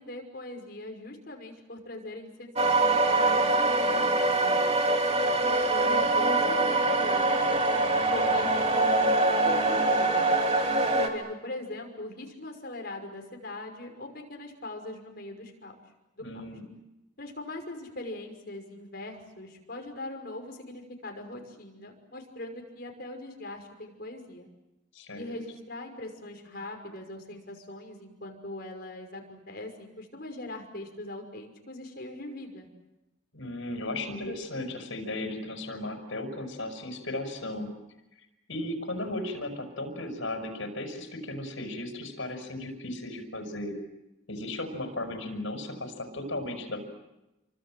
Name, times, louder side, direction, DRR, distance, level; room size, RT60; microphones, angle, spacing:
voice 1, 0.0-4.7 5.4-7.5 8.1-10.3 10.8-15.7 16.2-16.3 17.2-24.5 25.1-32.7, left 1 dB, 50° left, 3 dB, 5.7 m, -41 dB
sound 1, 2.6-11.1, right 2 dB, 30° right, 3.0 m, -24 dB
voice 2, 16.2-16.7 24.9-25.4 33.3-37.8 38.5-43.7 44.3-46.8, left 1 dB, 80° left, 5 dB, 6.0 m, -36 dB
29.0 x 25.0 x 7.7 m, 0.96 s
head